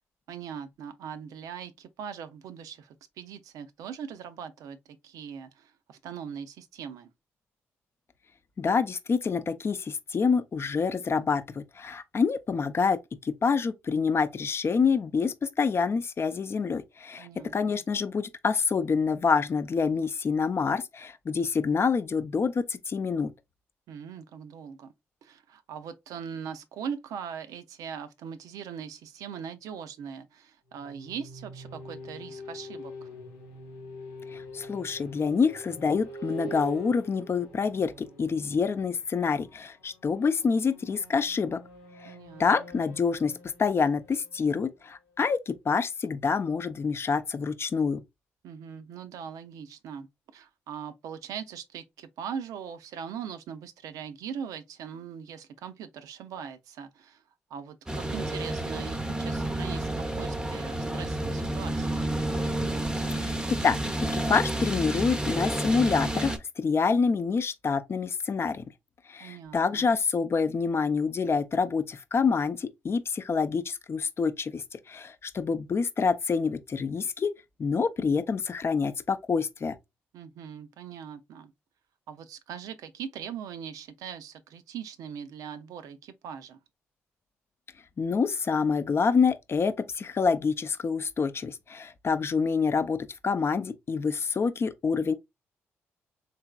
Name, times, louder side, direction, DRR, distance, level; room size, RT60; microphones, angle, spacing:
voice 1, 0.3-4.8 5.0-7.1 17.2-17.8 23.9-24.9 25.2-33.1 42.0-42.7 48.4-50.1 50.3-57.2 57.5-62.0 69.2-69.9 80.1-81.5 82.1-86.6, right 7 dB, 70° right, 0.5 m, -41 dB
voice 2, 8.6-17.3 17.5-23.3 34.3-41.6 42.0-42.1 42.4-43.3 43.6-48.0 63.2-63.8 64.1-68.6 69.1-77.3 77.6-79.8 88.0-95.1, left 5 dB, 45° left, 0.5 m, -27 dB
sound 1, 30.7-45.3, equal, 90° left, 1.0 m, -45 dB
sound 2, 57.9-66.4, right 1 dB, 10° right, 0.6 m, -30 dB
3.3 x 3.0 x 2.2 m
hypercardioid pair, 50°, 6 cm